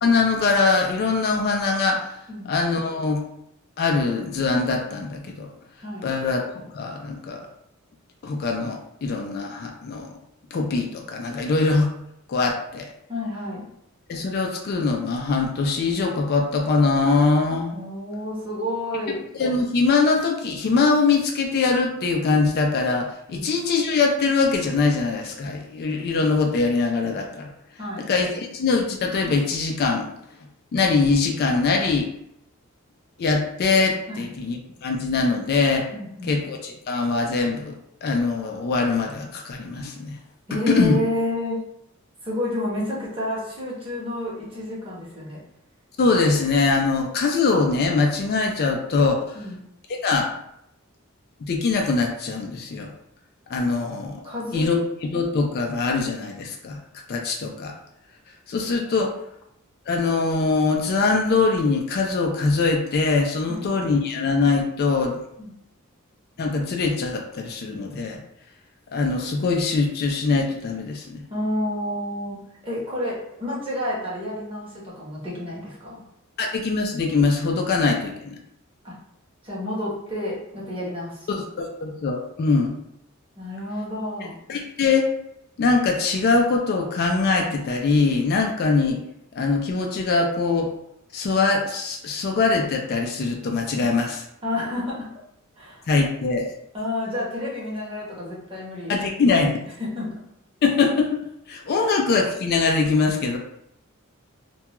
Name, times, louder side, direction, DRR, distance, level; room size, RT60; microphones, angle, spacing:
voice 1, 0.0-2.1 2.5-3.2 3.8-5.5 6.0-6.4 6.7-7.5 8.2-10.1 10.5-11.9 12.3-12.9 14.1-17.7 19.4-27.5 28.0-30.1 30.7-32.1 33.2-35.9 36.3-37.8 38.0-40.1 40.7-41.0 46.0-49.2 49.9-50.3 51.4-52.9 53.5-54.2 54.5-56.8 57.1-57.7 58.5-59.1 59.9-65.2 66.4-68.2 68.9-71.2 76.4-78.4 81.3-82.8 84.5-85.1 85.6-89.0 89.3-90.7 91.1-94.2 95.9-96.5 98.9-99.5 100.6-101.2 101.5-103.4, left 4 dB, 50° left, 2 dB, 0.3 m, -22 dB
voice 2, 13.1-13.6 17.7-19.2 23.3-23.5 27.8-28.1 34.1-34.3 35.9-36.4 40.5-41.6 42.2-45.4 49.3-49.6 54.2-54.7 58.9-59.0 63.5-63.6 65.4-65.5 71.3-72.4 72.6-76.0 78.8-78.9 79.4-81.3 83.4-84.4 94.4-95.1 95.6-95.8 96.7-98.9 99.8-100.2 101.7-101.9, left 1 dB, 25° right, -6 dB, 0.9 m, -30 dB
2.3 x 2.2 x 2.9 m, 0.76 s
head